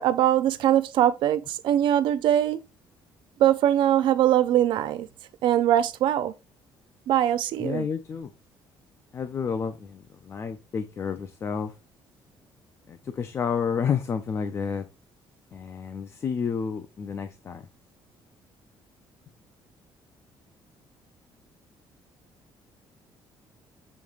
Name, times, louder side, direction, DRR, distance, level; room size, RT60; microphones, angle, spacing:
voice 1, 0.0-2.6 3.4-5.1 5.4-6.3 7.1-7.9, right 11 dB, 70° right, 0.5 m, -22 dB
voice 2, 7.6-8.3 9.1-11.7 12.9-14.8 15.5-17.7, left 6 dB, 30° left, 0.4 m, -30 dB
7.0 x 3.1 x 2.4 m
cardioid pair, 150°, 8 cm